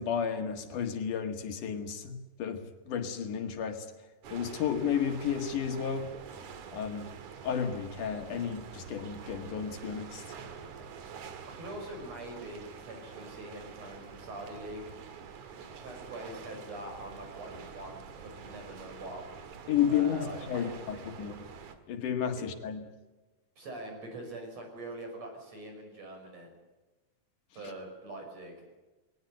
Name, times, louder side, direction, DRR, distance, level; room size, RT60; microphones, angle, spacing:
voice 1, 0.0-3.9 4.3-6.1 6.7-7.1 7.4-10.2 19.7-21.3 21.9-22.8, left 8 dB, 80° left, 6 dB, 3.4 m, -32 dB
sound 1, 4.2-21.8, right 6 dB, 70° right, 3.1 m, -47 dB
voice 2, 11.5-14.8 15.6-19.2 19.9-21.3 22.4-22.5 23.6-26.5 27.5-28.6, right 1 dB, 55° right, 3 dB, 7.0 m, -44 dB
20.5 x 18.5 x 9.5 m, 1.1 s
omnidirectional pair, 3.6 m